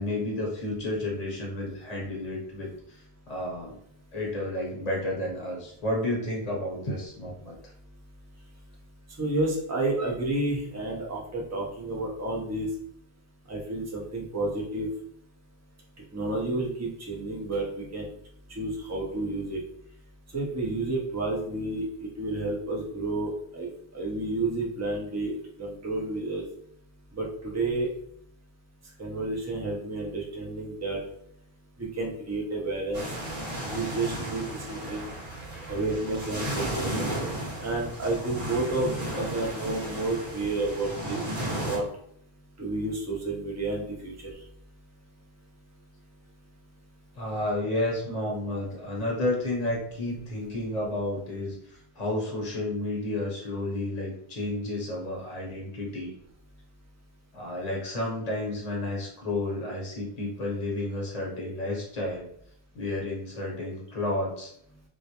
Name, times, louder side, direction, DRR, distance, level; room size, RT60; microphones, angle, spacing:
voice 1, 0.0-3.8 4.1-7.6 47.1-56.1 57.3-62.3 62.7-64.5, left 1 dB, 45° left, -2 dB, 0.8 m, -31 dB
voice 2, 9.2-12.7 13.5-14.9 16.1-18.1 18.5-19.6 20.3-26.5 27.1-27.9 29.0-31.0 31.8-33.2 33.6-35.1 35.7-36.9 37.6-41.3 41.5-41.9 42.6-44.5, right 2 dB, 25° right, -2 dB, 0.4 m, -31 dB
sound 1, 32.9-41.8, right 1 dB, 45° right, 0.8 m, -34 dB
2.3 x 2.0 x 2.8 m, 0.70 s
omnidirectional pair, 1.0 m